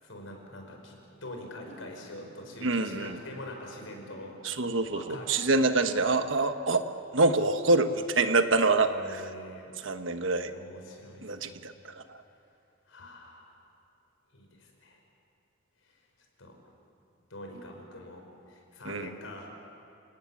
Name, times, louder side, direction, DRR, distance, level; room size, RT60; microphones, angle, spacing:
voice 1, 0.0-4.4 4.9-5.4 8.9-9.7 10.5-11.6 12.9-13.6 14.3-15.0 15.8-16.0 16.4-16.6 17.3-19.6, left 1 dB, 85° left, 2 dB, 5.3 m, -44 dB
voice 2, 2.6-3.2 4.4-6.8 7.1-9.2 9.8-10.5 11.2-12.2 18.8-19.1, right 3 dB, 70° right, 8 dB, 1.3 m, -26 dB
29.0 x 18.0 x 8.5 m, 2.7 s
head